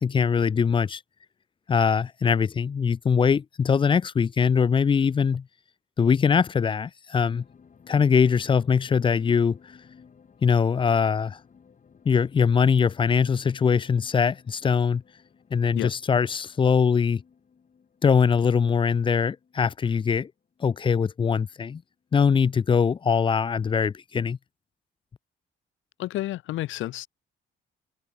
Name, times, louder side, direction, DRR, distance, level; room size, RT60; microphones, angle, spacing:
voice 1, 0.0-1.0 1.7-5.4 6.0-7.4 7.9-9.6 10.4-11.4 12.1-15.0 15.5-17.2 18.0-20.3 20.6-21.8 22.1-24.4, left 6 dB, 25° left, 0.4 m, -22 dB
sound 1, 7.2-21.8 22.2-22.3, left 6 dB, 40° left, 2.7 m, -57 dB
voice 2, 26.0-27.1, left 15 dB, 80° left, 0.8 m, -30 dB
cardioid pair, 90°, 20 cm